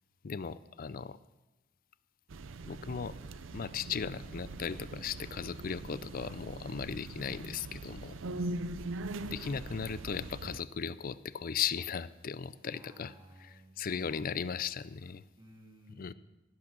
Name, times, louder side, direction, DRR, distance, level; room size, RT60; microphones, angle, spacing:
voice 1, 0.2-1.2 2.7-3.2 3.5-8.2 9.3-13.1 13.8-15.2 16.0-16.1, left 6 dB, 45° left, 17 dB, 0.4 m, -37 dB
sound 1, 2.3-10.6, right 2 dB, 70° right, 0.6 m, -42 dB
voice 2, 12.5-14.5 15.4-16.1, equal, 20° right, 1 dB, 2.0 m, -58 dB
15.5 x 8.7 x 6.1 m, 1.0 s
head